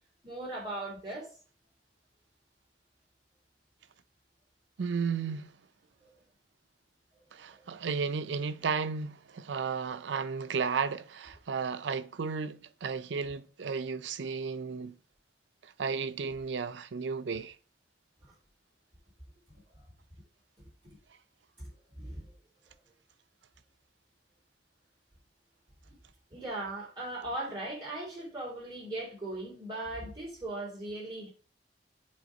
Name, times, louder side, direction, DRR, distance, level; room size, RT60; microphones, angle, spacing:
voice 1, 0.2-1.4 6.0-6.1 7.5-7.6 20.8-21.0 21.6-21.7 21.9-22.3 26.3-31.3, right 2 dB, 25° right, 3.2 m, -38 dB
voice 2, 4.8-5.6 7.3-14.9 15.6-17.5, right 5 dB, 80° right, 0.5 m, -34 dB
7.8 x 3.6 x 5.1 m
head